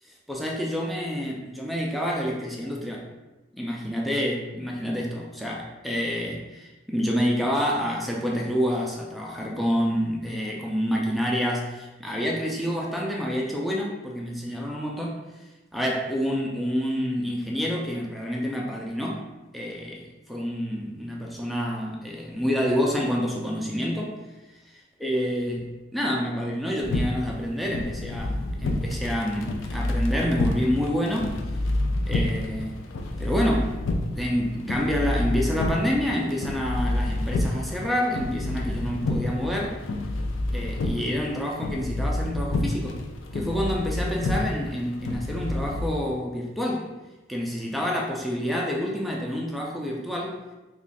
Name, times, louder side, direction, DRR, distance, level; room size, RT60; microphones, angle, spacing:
voice 1, 0.3-3.1 3.5-15.2 15.7-19.2 19.5-24.2 24.7-31.4 32.1-32.8 33.2-33.8 34.2-39.8 40.5-43.0 43.3-46.9 47.3-50.4, equal, ahead, -2 dB, 0.3 m, -28 dB
sound 1, 26.8-45.9, left 1 dB, 90° left, 0.4 m, -29 dB
3.0 x 2.3 x 4.0 m, 1.1 s
head